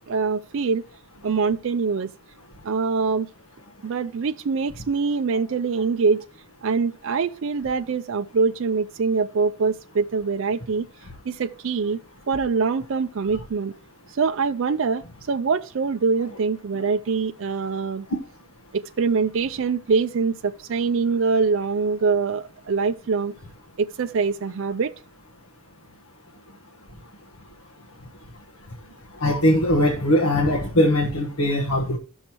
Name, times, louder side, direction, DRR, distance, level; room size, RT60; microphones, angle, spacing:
voice 1, 0.1-0.8 1.2-2.1 2.6-3.3 3.8-6.2 6.6-10.8 11.3-12.0 12.3-13.7 14.1-18.1 18.7-23.3 23.8-24.9, right 5 dB, 60° right, 0.4 m, -24 dB
voice 2, 29.2-32.0, left 1 dB, 85° left, 1.2 m, -20 dB
15.0 x 6.3 x 2.9 m
head